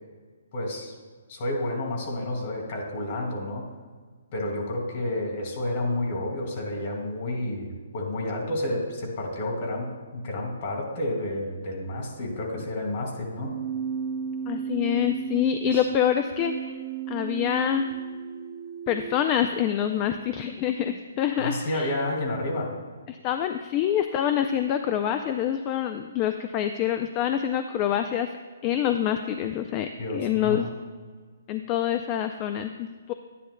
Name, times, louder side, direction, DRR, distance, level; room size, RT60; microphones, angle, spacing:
voice 1, 0.5-0.9 1.3-3.6 4.3-13.5 15.7-15.8 21.4-22.7 30.0-30.7, left 1 dB, 45° left, 1 dB, 2.4 m, -30 dB
Keyboard (musical), 13.3-19.3, right 7 dB, 35° right, 0.4 m, -34 dB
voice 2, 14.5-16.8 17.1-17.9 18.9-21.9 23.1-28.3 28.6-30.7 31.5-33.1, left 10 dB, 25° left, 8 dB, 0.3 m, -26 dB
10.5 x 9.9 x 2.2 m, 1.5 s
hypercardioid pair, 155°, 0 cm